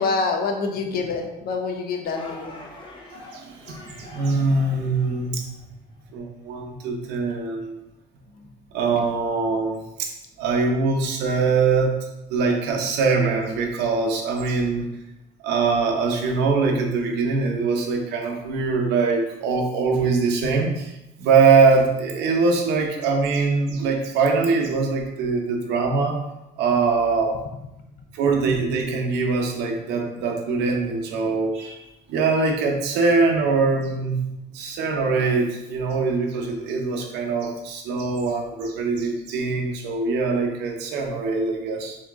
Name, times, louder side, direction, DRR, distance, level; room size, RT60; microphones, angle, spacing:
voice 1, 0.0-2.5, left 4 dB, 65° left, 4 dB, 0.7 m, -26 dB
sound 1, 2.0-5.7, left 1 dB, 30° left, 0.9 m, -43 dB
voice 2, 3.1-5.4 6.1-7.8 8.7-11.9 12.3-14.9 15.4-20.9 21.2-26.2 26.6-27.4 28.1-31.8 32.1-34.2 34.5-42.0, right 4 dB, 85° right, 2 dB, 0.8 m, -22 dB
4.0 x 2.8 x 3.5 m, 0.93 s
cardioid pair, 110°, 17 cm